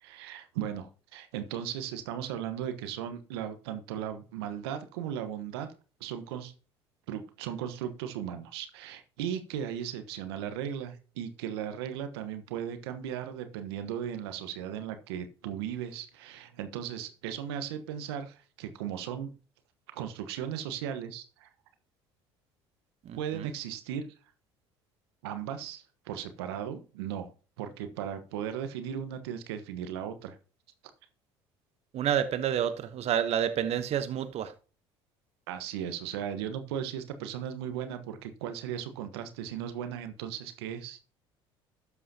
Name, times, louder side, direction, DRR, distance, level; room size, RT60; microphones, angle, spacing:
voice 1, 0.0-5.7 6.0-6.5 7.1-19.3 19.9-21.5 23.2-24.1 25.2-27.3 27.6-30.4 35.5-41.0, right 9 dB, 75° right, 1.2 m, -37 dB
voice 2, 23.0-23.5 31.9-34.5, right 9 dB, 50° right, 1.0 m, -29 dB
12.5 x 8.4 x 2.9 m
hypercardioid pair, 65°, 13 cm